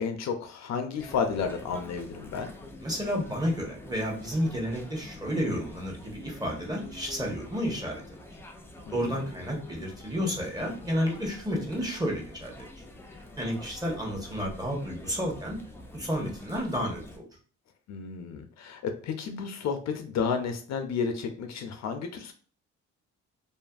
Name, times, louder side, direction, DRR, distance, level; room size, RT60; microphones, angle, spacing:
voice 1, 0.0-2.5 8.9-9.2 17.9-22.3, left 6 dB, 60° left, 6 dB, 0.5 m, -32 dB
sound 1, 1.0-17.2, left 1 dB, 10° left, 0.4 m, -46 dB
voice 2, 2.8-8.0 8.9-12.7 13.4-15.6 15.9-17.2, equal, 15° right, -1 dB, 0.9 m, -31 dB
2.6 x 2.5 x 2.3 m, 0.41 s
cardioid pair, 90°, 30 cm